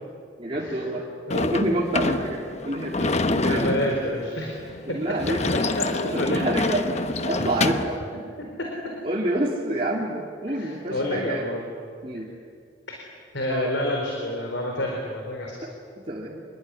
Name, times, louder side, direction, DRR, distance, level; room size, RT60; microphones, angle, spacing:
voice 1, 0.4-1.1 1.3-3.8 4.8-5.4 5.8-6.8 7.3-8.0 9.0-11.5 12.0-12.3 13.4-13.7 15.6-15.7 16.1-16.4, right 1 dB, 30° right, -4 dB, 2.9 m, -28 dB
Sliding door / Slam, 1.3-8.0, left 2 dB, 40° left, 1.0 m, -27 dB
voice 2, 3.4-4.5 5.8-6.4 10.5-11.6 12.9-13.0 13.3-15.6, left 1 dB, 85° left, 0 dB, 4.4 m, -28 dB
26.5 x 22.0 x 9.8 m, 2.2 s
head